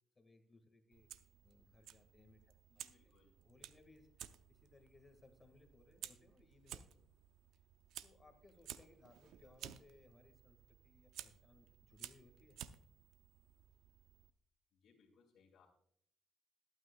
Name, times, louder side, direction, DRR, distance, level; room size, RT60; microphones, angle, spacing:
voice 1, 0.1-1.1 1.4-2.4 3.1-3.2 3.4-4.1 4.5-7.0 8.0-10.6 10.8-12.6, left 3 dB, 25° left, 7 dB, 1.7 m, -65 dB
Fire, 0.9-14.3, right 11 dB, 85° right, 0.5 m, -56 dB
voice 2, 2.7-3.4 9.2-9.5 14.7-15.7, left 5 dB, 70° left, -4 dB, 2.3 m, -70 dB
21.0 x 9.0 x 2.3 m, 0.69 s
cardioid pair, 90°, 0 cm